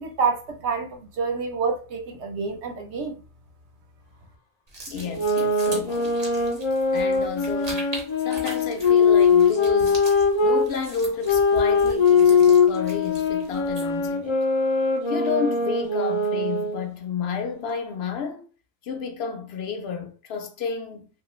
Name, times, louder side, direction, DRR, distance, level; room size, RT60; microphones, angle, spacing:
voice 1, 0.0-3.2, right 5 dB, 65° right, 0.9 m, -28 dB
sound 1, 4.7-14.1, right 2 dB, 35° right, 0.9 m, -41 dB
voice 2, 4.9-6.2 6.9-10.0 10.4-14.4 15.1-18.5 18.8-21.1, left 5 dB, 65° left, 0.7 m, -31 dB
sound 2, 5.0-10.7 11.2-16.8, left 4 dB, 40° left, 0.4 m, -21 dB
2.8 x 2.4 x 3.0 m
omnidirectional pair, 1.3 m